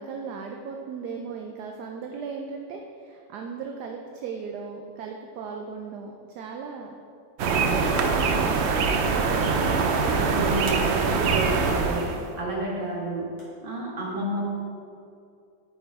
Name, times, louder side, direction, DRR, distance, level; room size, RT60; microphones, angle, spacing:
voice 1, 0.0-6.9 7.5-9.9, right 5 dB, 70° right, 2 dB, 1.1 m, -37 dB
voice 2, 7.4-7.7 10.0-13.4 13.6-14.4, right 2 dB, 30° right, -4 dB, 1.7 m, -30 dB
sound 1, 7.4-12.3, right 4 dB, 90° right, 0.5 m, -23 dB
sound 2, 8.0-8.6 10.7-11.2 13.4-13.5, equal, 65° left, 2.7 m, -44 dB
8.7 x 5.3 x 4.7 m, 2.4 s
omnidirectional pair, 1.9 m